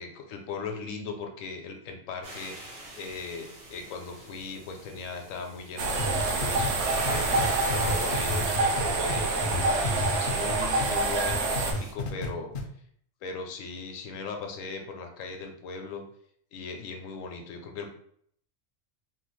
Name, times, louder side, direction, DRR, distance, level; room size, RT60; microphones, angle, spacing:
voice 1, 0.0-8.6 9.0-12.5 13.2-16.0 16.5-17.9, left 5 dB, 90° left, 4 dB, 1.0 m, -38 dB
sound 1, 2.2-11.9, right 1 dB, 90° right, 1.4 m, -41 dB
sound 2, 5.8-11.7, right 3 dB, 65° right, 0.8 m, -27 dB
sound 3, 6.0-10.9 11.2-12.3 12.5-12.6, left 3 dB, 60° left, 0.6 m, -32 dB
3.0 x 2.2 x 3.0 m, 0.64 s
omnidirectional pair, 1.3 m